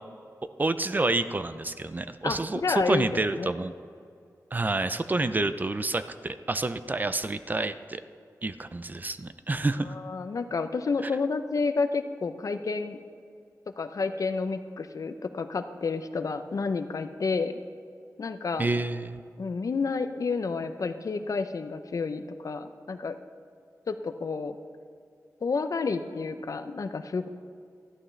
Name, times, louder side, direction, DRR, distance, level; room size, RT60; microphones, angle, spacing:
voice 1, 0.6-3.7 4.5-8.0 8.4-10.0 11.0-11.1 18.6-19.2, right 2 dB, 30° right, 12 dB, 0.4 m, -28 dB
voice 2, 2.2-3.5 9.8-13.0 13.8-17.6 18.2-18.7 19.4-23.2 23.9-24.6 25.4-27.3, left 4 dB, 60° left, 9 dB, 0.6 m, -30 dB
13.5 x 11.5 x 3.3 m, 2.3 s
wide cardioid pair, 100°, 6 cm